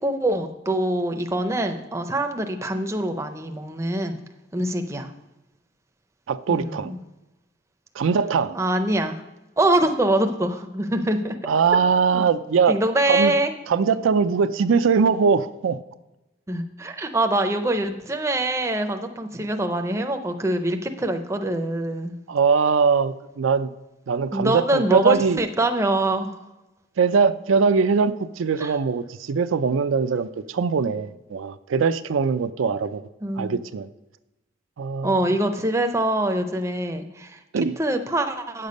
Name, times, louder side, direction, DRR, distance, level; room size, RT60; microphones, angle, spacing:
voice 1, 0.0-4.2 4.5-5.1 6.5-7.0 8.5-9.2 9.6-11.4 12.1-12.2 12.7-13.5 16.5-22.1 24.3-26.4 28.6-28.7 33.2-33.5 35.0-37.4 37.8-38.7, right 1 dB, 15° right, 6 dB, 0.5 m, -24 dB
voice 2, 6.3-6.9 8.0-8.6 11.4-12.8 13.1-13.3 13.7-15.8 22.3-23.7 24.1-25.4 27.0-33.0 33.4-33.9 34.8-35.3 37.5-37.7, right 5 dB, 90° right, 12 dB, 0.4 m, -21 dB
8.8 x 6.7 x 5.2 m, 1.0 s
head